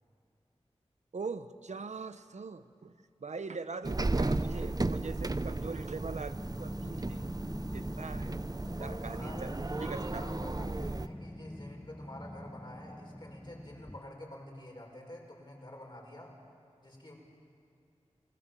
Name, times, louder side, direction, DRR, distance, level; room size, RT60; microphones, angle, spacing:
voice 1, 1.1-2.9 3.2-7.2 7.7-8.3 8.7-9.5 9.8-10.3, right 4 dB, 85° right, 11 dB, 0.8 m, -42 dB
sound 1, 3.8-11.1, right 2 dB, 35° right, 0.7 m, -35 dB
Growling, 6.4-14.0, left 1 dB, 10° left, 0.9 m, -45 dB
voice 2, 8.7-16.3 16.8-17.1, left 1 dB, 45° left, -1 dB, 6.3 m, -49 dB
29.0 x 19.0 x 7.5 m, 2.5 s
wide cardioid pair, 45°, 12 cm